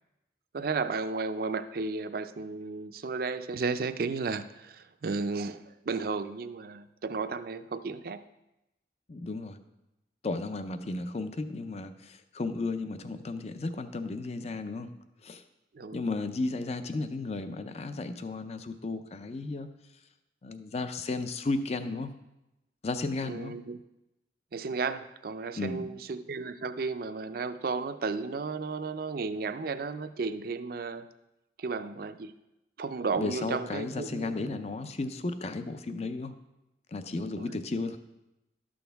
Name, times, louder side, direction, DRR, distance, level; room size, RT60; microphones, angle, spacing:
voice 1, 0.5-5.6 5.9-8.2 15.8-16.0 23.2-23.8 24.5-31.0 31.6-32.3 32.8-34.4 37.4-37.5, right 4 dB, 55° right, 11 dB, 0.4 m, -33 dB
voice 2, 9.1-9.6 10.2-15.0 15.2-15.4 15.9-19.7 20.4-22.1 22.8-23.6 25.5-25.9 33.2-36.3 36.9-38.0, left 3 dB, 35° left, 10 dB, 0.5 m, -34 dB
12.0 x 6.3 x 3.4 m, 0.93 s
head